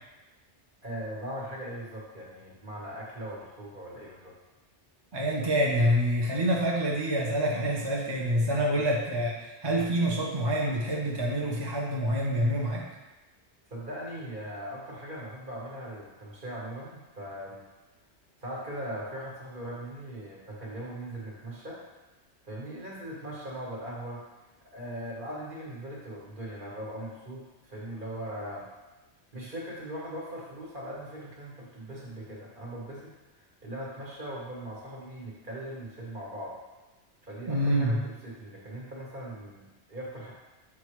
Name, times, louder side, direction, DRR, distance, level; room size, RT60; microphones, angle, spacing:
voice 1, 0.8-4.3 8.7-8.8 13.7-17.6 18.4-21.8 22.4-24.2 24.6-28.7 29.3-33.1 33.4-36.6 37.2-38.0 38.2-40.3, right 1 dB, 45° right, -4 dB, 1.5 m, -40 dB
voice 2, 5.1-12.9 37.5-38.0, equal, 25° right, -3 dB, 0.6 m, -27 dB
7.1 x 4.6 x 3.1 m, 1.1 s
omnidirectional pair, 1.2 m